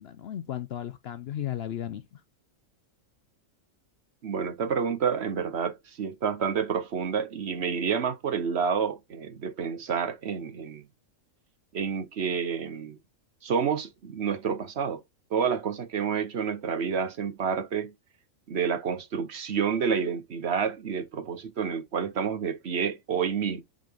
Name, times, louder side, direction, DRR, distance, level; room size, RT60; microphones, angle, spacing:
voice 1, 0.0-2.2, left 11 dB, 65° left, 0.7 m, -35 dB
voice 2, 4.2-10.8 11.7-13.0 13.4-15.0 15.3-17.9 18.5-23.6, right 6 dB, 55° right, 1.1 m, -29 dB
7.4 x 3.9 x 3.4 m
omnidirectional pair, 1.4 m